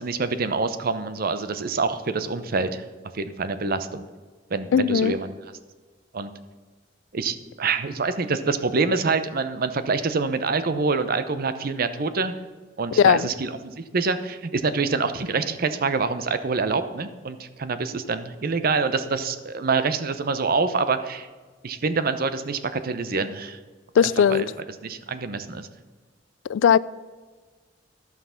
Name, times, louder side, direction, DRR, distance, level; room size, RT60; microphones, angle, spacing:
voice 1, 0.0-2.8 3.1-4.1 4.5-5.3 6.1-6.3 7.1-12.4 12.8-21.3 21.6-23.6 24.3-24.5 24.8-25.7, right 4 dB, 50° right, 0.7 m, -26 dB
voice 2, 4.7-5.1 13.0-13.3 24.0-24.4 26.5-26.8, left 8 dB, 80° left, 0.3 m, -18 dB
12.0 x 5.8 x 5.7 m
head